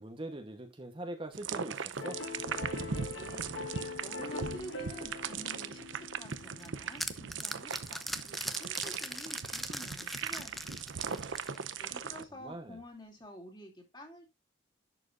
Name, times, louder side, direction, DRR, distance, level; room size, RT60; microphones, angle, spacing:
voice 1, 0.0-2.2 12.4-12.8, right 1 dB, 25° right, 1.0 m, -42 dB
sound 1, 1.3-12.2, right 6 dB, 85° right, 0.7 m, -39 dB
sound 2, 2.0-7.0, left 3 dB, 80° left, 1.7 m, -43 dB
voice 2, 3.1-11.1 11.5-14.3, equal, 20° left, 2.7 m, -50 dB
sound 3, 6.3-11.8, equal, ahead, 0.6 m, -40 dB
11.0 x 7.6 x 2.5 m
head